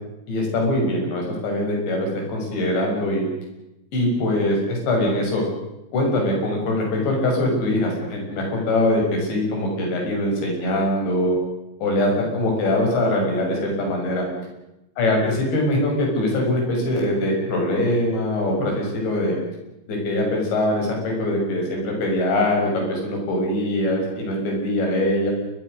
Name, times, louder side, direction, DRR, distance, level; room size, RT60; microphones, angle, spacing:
voice 1, 0.3-3.2 3.9-5.4 5.9-11.4 11.8-14.3 15.0-19.4 19.9-25.3, left 1 dB, 85° left, 1 dB, 8.6 m, -22 dB
29.5 x 22.5 x 6.5 m, 0.93 s
omnidirectional pair, 5.0 m